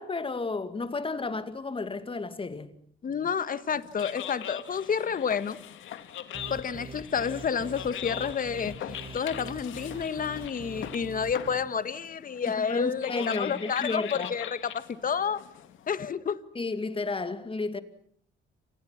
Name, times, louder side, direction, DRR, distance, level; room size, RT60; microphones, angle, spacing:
voice 1, 0.0-2.7 12.5-14.3 16.5-17.8, left 3 dB, 25° left, 2.4 m, -32 dB
voice 2, 3.0-5.6 6.5-15.4 15.9-16.4, left 7 dB, 45° left, 1.6 m, -30 dB
sound 1, 3.7-15.9, left 10 dB, 80° left, 2.2 m, -41 dB
sound 2, 6.3-11.5, right 3 dB, 25° right, 2.3 m, -44 dB
29.5 x 26.0 x 6.0 m
cardioid pair, 90°, 20 cm